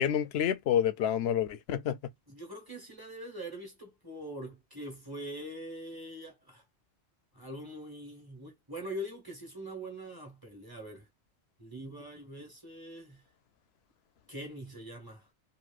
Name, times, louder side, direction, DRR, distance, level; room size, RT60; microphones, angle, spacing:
voice 1, 0.0-2.1, left 9 dB, 70° left, 0.8 m, -28 dB
voice 2, 2.3-6.6 7.3-11.1 11.6-13.2 14.3-15.3, right 1 dB, 20° right, 1.2 m, -43 dB
3.0 x 2.7 x 2.3 m
omnidirectional pair, 1.2 m